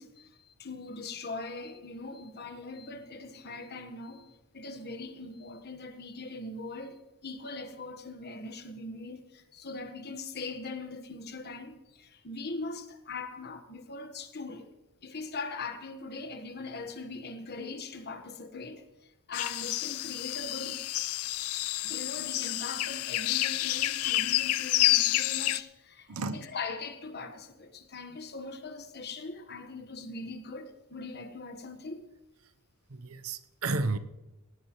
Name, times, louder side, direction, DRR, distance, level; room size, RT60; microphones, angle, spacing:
voice 1, 0.0-14.7 15.0-20.8 21.4-32.0, left 3 dB, 45° left, 1.3 m, -41 dB
sound 1, 19.3-25.6, left 16 dB, 75° left, 0.4 m, -29 dB
voice 2, 26.1-26.5 32.9-34.0, right 3 dB, 75° right, 0.8 m, -32 dB
18.5 x 17.0 x 3.1 m
head